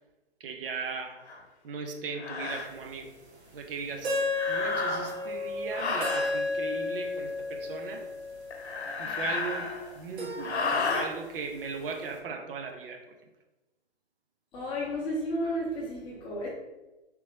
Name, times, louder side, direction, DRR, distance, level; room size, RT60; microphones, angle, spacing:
voice 1, 0.4-1.3 1.6-3.1 3.5-8.1 9.0-13.1, right 4 dB, 60° right, 4 dB, 0.5 m, -38 dB
sound 1, 1.3-1.4 2.2-2.7 4.3-5.3 5.7-6.3 8.5-10.0 10.4-11.1, left 4 dB, 80° left, 0.8 m, -32 dB
sound 2, 2.7-2.8 4.0-8.9 10.2-11.7, left 2 dB, 75° right, 1.0 m, -33 dB
voice 2, 14.5-16.5, equal, 15° left, -5 dB, 0.7 m, -32 dB
3.3 x 2.8 x 3.1 m, 1.1 s
hypercardioid pair, 140°, 33 cm